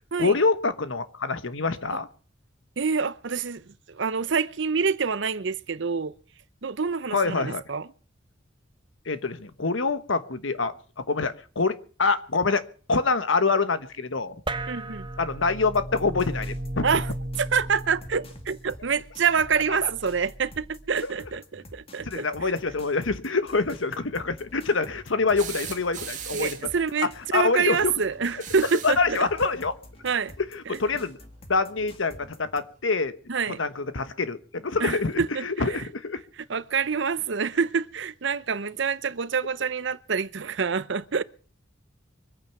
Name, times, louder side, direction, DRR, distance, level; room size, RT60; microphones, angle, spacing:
voice 1, 0.2-2.1 7.1-7.6 9.1-10.7 11.1-12.6 12.9-14.3 15.2-16.8 19.8-19.9 21.0-21.1 22.0-26.6 27.3-27.9 28.8-29.7 30.5-31.2 31.5-33.1 33.6-36.2, left 4 dB, 80° left, 1.2 m, -25 dB
voice 2, 2.8-6.1 6.6-7.9 14.7-15.1 16.8-17.1 17.4-22.5 26.3-29.3 30.0-30.3 30.7-30.8 33.3-33.6 34.8-35.8 36.5-41.2, right 5 dB, 65° right, 0.7 m, -27 dB
sound 1, 14.5-21.2, right 1 dB, 25° right, 0.8 m, -36 dB
sound 2, 15.7-32.6, left 1 dB, 30° left, 2.0 m, -48 dB
sound 3, 25.4-26.8 28.3-29.1 30.7-30.8 32.3-32.4, right 9 dB, 40° right, 1.9 m, -38 dB
24.0 x 9.0 x 5.9 m
head